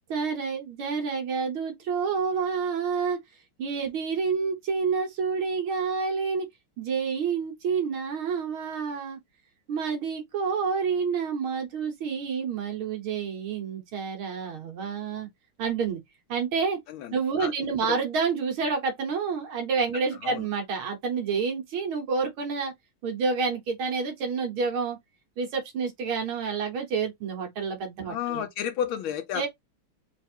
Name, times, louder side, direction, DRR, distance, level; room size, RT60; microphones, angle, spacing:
voice 1, 0.1-3.2 3.6-6.5 6.8-9.2 9.7-15.3 15.6-16.0 16.3-16.8 17.1-22.7 23.0-25.0 25.4-28.5 29.3-29.5, right 5 dB, 75° right, 2.0 m, -28 dB
voice 2, 16.9-17.5 17.9-18.0 20.2-20.4 28.0-29.5, left 9 dB, 75° left, 1.3 m, -32 dB
4.6 x 2.6 x 4.3 m
omnidirectional pair, 2.3 m